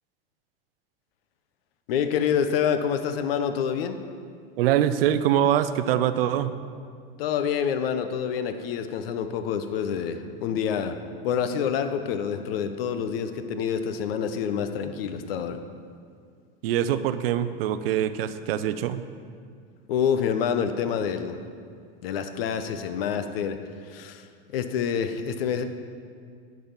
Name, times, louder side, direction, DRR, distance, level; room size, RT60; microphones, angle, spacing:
voice 1, 1.9-4.0 7.2-11.0 11.2-15.6 19.9-21.4 22.0-25.6, left 7 dB, 75° left, 9 dB, 0.8 m, -27 dB
voice 2, 4.6-6.5 16.6-19.0, right 10 dB, 80° right, 12 dB, 0.6 m, -24 dB
11.0 x 4.1 x 7.2 m, 2.2 s
supercardioid pair, 130°, 29 cm